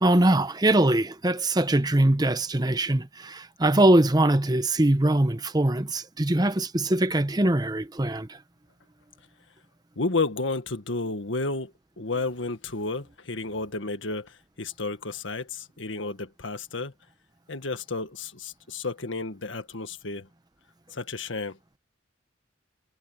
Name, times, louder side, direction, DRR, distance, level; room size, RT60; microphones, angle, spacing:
voice 1, 0.0-8.4, right 1 dB, 20° right, 0.9 m, -22 dB
voice 2, 10.0-16.9 17.5-20.3 20.9-21.6, left 3 dB, 90° left, 1.8 m, -32 dB
head